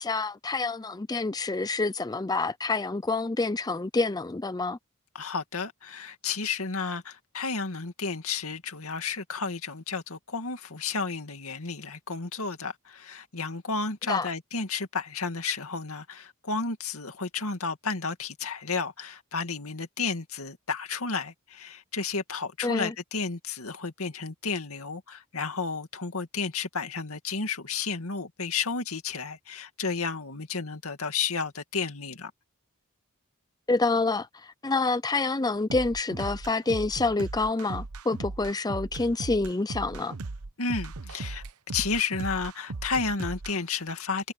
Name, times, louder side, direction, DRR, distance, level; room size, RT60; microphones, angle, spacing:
voice 1, 0.0-4.8 14.1-14.3 22.6-22.9 33.7-40.1, left 3 dB, 15° left, 0.5 m, -27 dB
voice 2, 5.1-32.3 40.6-41.4 41.7-44.3, left 4 dB, 70° left, 2.4 m, -32 dB
sound 1, 35.7-43.6, right 3 dB, 80° right, 1.0 m, -37 dB
head